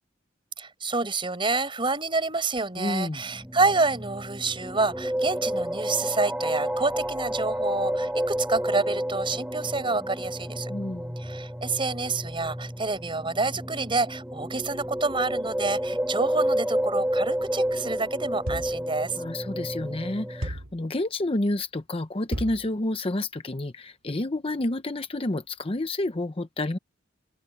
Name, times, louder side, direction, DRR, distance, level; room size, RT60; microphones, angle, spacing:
voice 1, 0.6-10.7 11.2-19.2, right 3 dB, 25° right, 5.3 m, -28 dB
voice 2, 2.8-3.2 10.7-11.2 19.2-26.8, left 2 dB, 30° left, 0.8 m, -29 dB
sound 1, 3.2-20.5, equal, 5° right, 2.8 m, -30 dB
sound 2, 18.5-18.9 20.4-20.8 22.3-22.7, right 1 dB, 90° right, 2.4 m, -33 dB
open air
head